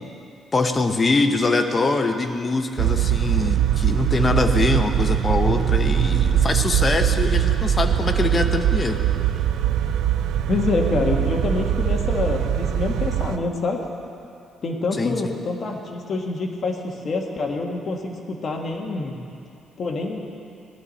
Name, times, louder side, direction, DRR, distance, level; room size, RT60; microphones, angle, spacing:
voice 1, 0.5-9.0 15.0-15.3, left 3 dB, 30° left, 6 dB, 0.9 m, -23 dB
sound 1, 2.8-13.4, right 10 dB, 80° right, 0.4 m, -21 dB
voice 2, 10.5-13.8 14.6-19.1 19.8-20.3, left 3 dB, 45° left, 1 dB, 1.6 m, -26 dB
17.5 x 12.0 x 4.2 m, 2.5 s
cardioid pair, 110°, 0 cm